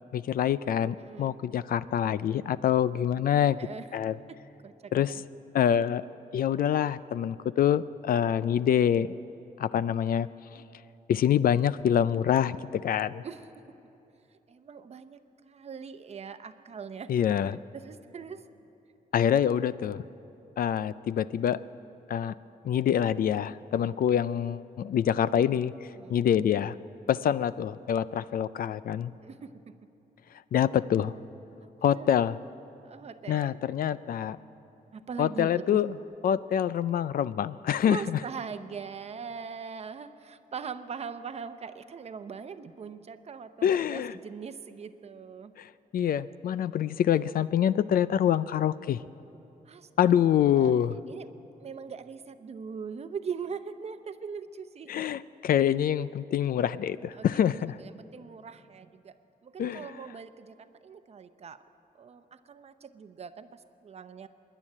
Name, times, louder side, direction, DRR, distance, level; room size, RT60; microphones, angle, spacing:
voice 1, 0.0-3.6 3.9-4.2 4.9-5.2 5.5-6.0 6.3-9.1 9.6-10.3 11.1-13.2 17.1-17.6 19.1-20.0 20.6-21.6 22.1-22.3 22.6-25.7 26.1-26.7 27.1-29.1 30.5-31.1 31.8-32.4 33.3-34.4 35.2-36.0 36.2-38.2 43.6-44.1 45.6-49.0 50.0-50.9 54.9-57.8 59.6-59.9, left 9 dB, 65° left, 16 dB, 0.4 m, -26 dB
voice 2, 1.0-1.4 3.6-3.9 4.3-4.4 4.6-5.2 13.2-13.6 14.5-17.1 17.5-18.4 25.9-26.2 29.2-29.7 30.1-30.2 31.6-32.1 32.8-33.6 34.9-35.8 37.8-45.5 49.6-50.2 50.5-50.7 51.1-51.3 51.6-55.1 57.1-57.4 57.8-59.1 59.4-61.6 62.0-64.3, right 6 dB, 40° right, 10 dB, 0.7 m, -41 dB
25.5 x 11.0 x 9.9 m, 2.9 s
wide cardioid pair, 165°, 16 cm